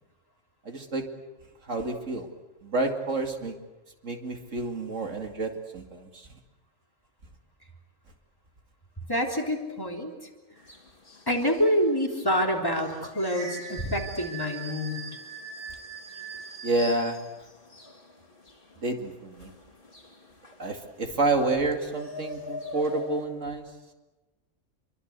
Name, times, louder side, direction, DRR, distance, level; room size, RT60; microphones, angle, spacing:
voice 1, 0.7-1.1 1.7-2.3 2.6-3.5 4.0-6.3 16.6-17.2 18.8-19.5 20.6-23.7, right 2 dB, 75° right, 4 dB, 2.7 m, -29 dB
voice 2, 9.1-10.1 11.3-15.0, equal, 15° left, 1 dB, 3.5 m, -27 dB
sound 1, 10.6-23.3, right 1 dB, 45° left, 3.2 m, -42 dB
27.0 x 23.5 x 8.2 m, 1.1 s
omnidirectional pair, 1.3 m